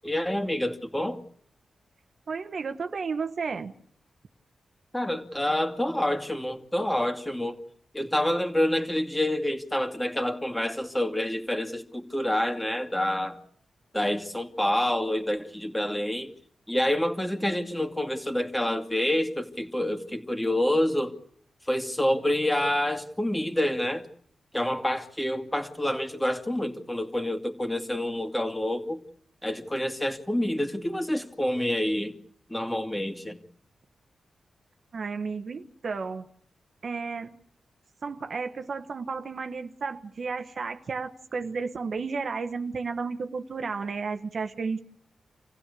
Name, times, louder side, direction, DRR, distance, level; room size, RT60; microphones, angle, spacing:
voice 1, 0.0-1.2 4.9-7.6 7.9-13.4 13.9-16.3 16.7-21.2 21.7-24.1 24.5-29.0 29.4-32.1 32.5-33.4, left 1 dB, 10° left, 5 dB, 2.5 m, -27 dB
voice 2, 2.3-3.7 34.9-36.2 36.8-37.3 38.0-44.8, right 4 dB, 60° right, 8 dB, 1.3 m, -32 dB
27.5 x 15.5 x 8.4 m, 0.65 s
cardioid pair, 85°, 0 cm